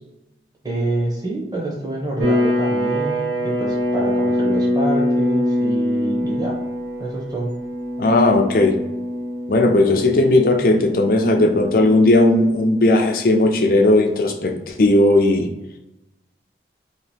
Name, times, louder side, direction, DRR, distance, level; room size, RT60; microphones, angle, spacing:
voice 1, 0.6-6.6 7.0-7.5, right 2 dB, 20° right, -3 dB, 0.8 m, -27 dB
sound 1, 2.2-13.3, left 1 dB, 75° right, 0.8 m, -24 dB
voice 2, 8.0-8.8 9.5-15.5, left 2 dB, 50° left, 4 dB, 0.5 m, -16 dB
2.9 x 2.5 x 4.2 m, 0.93 s
head